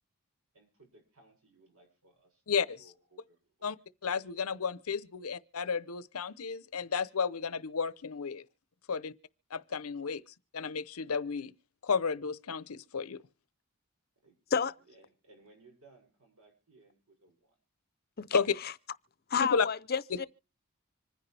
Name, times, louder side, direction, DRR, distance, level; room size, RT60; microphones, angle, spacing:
voice 1, 0.5-2.4 2.8-3.7 14.2-17.5, right 3 dB, 90° right, 7.0 m, -61 dB
voice 2, 2.5-2.8 3.6-3.8 4.0-8.4 8.9-9.1 9.5-10.2 10.5-11.5 11.8-13.2 18.3-18.5 19.4-19.7 20.1-20.3, left 5 dB, 85° left, 0.7 m, -32 dB
voice 3, 18.2-18.7 19.3-20.3, left 6 dB, 45° left, 0.6 m, -31 dB
26.0 x 10.0 x 3.3 m
head